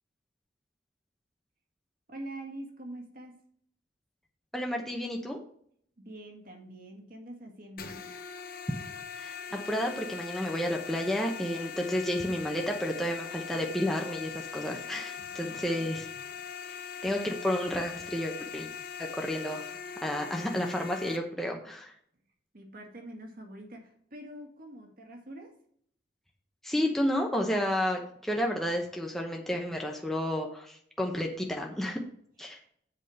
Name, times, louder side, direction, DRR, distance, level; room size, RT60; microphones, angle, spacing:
voice 1, 2.1-3.4 6.0-8.0 15.2-16.0 22.5-25.5 32.5-32.7, right 1 dB, 55° right, 2.1 m, -45 dB
voice 2, 4.5-5.4 9.1-16.1 17.0-18.7 19.0-21.9 26.6-32.0 32.4-32.6, equal, ahead, 0.9 m, -31 dB
sound 1, 7.8-21.2, left 7 dB, 55° left, 1.0 m, -41 dB
7.9 x 5.0 x 6.5 m
head